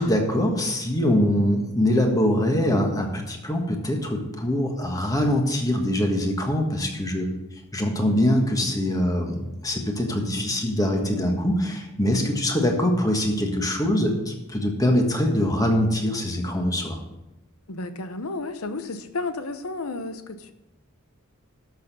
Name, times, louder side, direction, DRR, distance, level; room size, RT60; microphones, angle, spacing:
voice 1, 0.0-7.3 7.7-17.0, left 1 dB, 15° left, 3 dB, 1.5 m, -23 dB
voice 2, 17.7-20.5, left 3 dB, 80° left, 10 dB, 0.9 m, -32 dB
12.0 x 6.6 x 5.3 m, 0.95 s
head